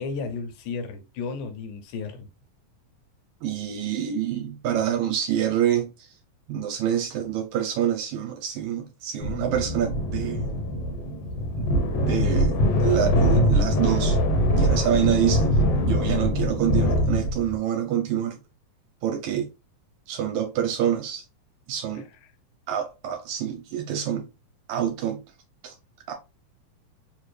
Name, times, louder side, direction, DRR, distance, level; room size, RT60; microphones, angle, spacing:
voice 1, 0.0-2.3 21.9-22.0, left 4 dB, 85° left, 2.3 m, -33 dB
voice 2, 3.4-6.1 6.5-10.8 11.1-11.2 11.6-11.7 11.9-14.2 14.5-18.4 19.0-19.5 20.1-21.2 21.7-22.1 22.7-24.3 24.7-25.2 25.6-25.7 26.1-26.2, right 10 dB, 75° right, 1.9 m, -27 dB
sound 1, 9.2-17.6, equal, 70° left, 1.5 m, -23 dB
5.1 x 2.4 x 3.2 m
omnidirectional pair, 3.5 m